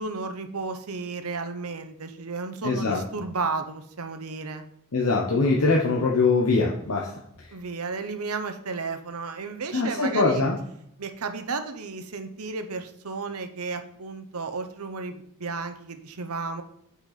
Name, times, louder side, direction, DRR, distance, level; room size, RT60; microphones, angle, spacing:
voice 1, 0.0-4.6 7.5-10.4 11.0-16.6, right 4 dB, 75° right, 8 dB, 0.9 m, -33 dB
voice 2, 2.6-3.0 4.9-7.1 9.7-10.6, left 3 dB, 70° left, -2 dB, 1.1 m, -22 dB
9.1 x 5.5 x 4.2 m, 0.73 s
head